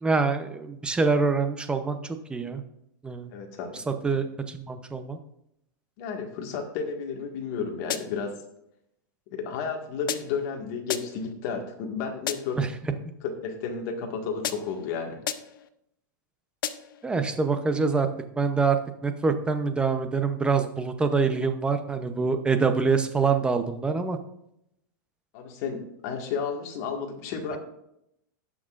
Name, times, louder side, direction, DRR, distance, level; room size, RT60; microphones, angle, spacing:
voice 1, 0.0-2.6 3.0-3.3 3.9-5.2 12.6-12.7 17.0-18.1 18.4-18.8 19.0-24.2, right 4 dB, 10° right, 8 dB, 0.7 m, -25 dB
voice 2, 3.3-3.8 6.0-8.4 9.3-12.6 13.2-15.2 25.3-27.6, left 5 dB, 50° left, 3 dB, 1.8 m, -32 dB
sound 1, 7.9-8.3 10.1-10.5 10.9-11.3 12.3-12.7 14.4-14.9 15.3-15.7 16.6-17.1, left 9 dB, 85° left, 0.7 m, -34 dB
17.0 x 6.1 x 2.5 m, 0.79 s
supercardioid pair, 150°, 11 cm